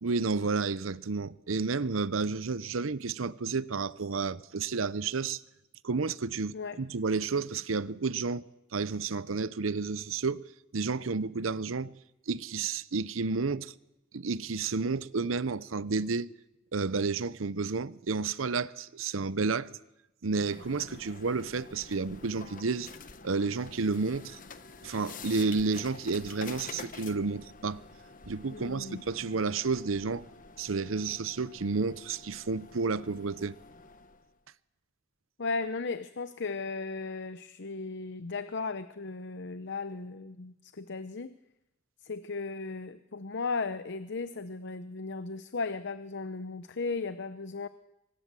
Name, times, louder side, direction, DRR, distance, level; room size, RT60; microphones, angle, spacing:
voice 1, 0.0-5.4 5.8-8.5 8.7-10.4 10.7-11.9 12.3-13.7 14.1-16.3 16.7-19.7 20.2-22.9 23.2-24.4 24.8-27.8 28.3-30.3 30.6-33.6, right 4 dB, 90° right, 0.8 m, -31 dB
sound 1, 20.4-34.3, left 4 dB, 45° left, 1.2 m, -49 dB
voice 2, 28.5-29.0 35.4-41.4 42.0-47.7, left 4 dB, 60° left, 0.8 m, -36 dB
24.0 x 20.0 x 7.6 m
head